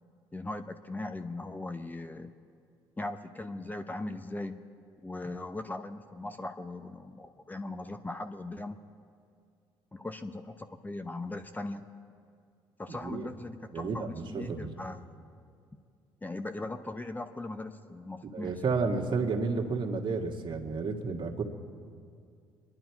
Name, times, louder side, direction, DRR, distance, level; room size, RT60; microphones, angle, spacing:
voice 1, 0.3-2.3 3.0-4.6 5.0-8.8 9.9-11.9 12.8-15.1 16.2-18.5, left 2 dB, 15° left, 8 dB, 0.8 m, -39 dB
voice 2, 12.9-13.3 13.7-14.7 18.3-21.4, right 4 dB, 50° right, 2 dB, 1.7 m, -31 dB
25.0 x 11.0 x 4.6 m, 2.3 s
supercardioid pair, 60°, 10 cm